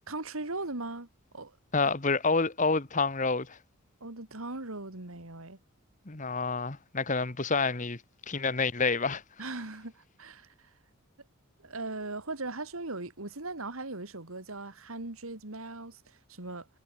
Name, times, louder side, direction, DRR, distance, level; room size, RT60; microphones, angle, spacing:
voice 1, 0.1-1.1 1.3-1.6 4.0-5.6 9.4-10.7 11.6-16.7, right 2 dB, 75° right, 2.8 m, -39 dB
voice 2, 1.7-3.6 6.1-8.0 8.3-9.2, left 4 dB, 35° left, 1.3 m, -28 dB
head